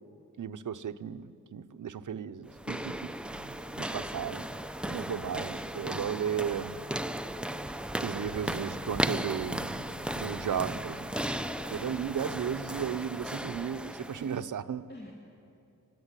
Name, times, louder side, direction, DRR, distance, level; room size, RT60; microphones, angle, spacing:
voice 1, 0.4-4.5 4.8-6.8 8.0-9.8 10.1-11.1 11.7-14.8, right 8 dB, 65° right, 10 dB, 0.9 m, -35 dB
sound 1, 2.5-14.4, right 1 dB, 5° right, 0.6 m, -36 dB
voice 2, 3.7-4.3 11.2-12.2 14.9-15.1, left 1 dB, 30° left, 0 dB, 2.5 m, -49 dB
sound 2, 8.4-13.2, left 3 dB, 85° left, 1.8 m, -55 dB
25.5 x 17.0 x 9.9 m, 2.7 s
wide cardioid pair, 125°, 33 cm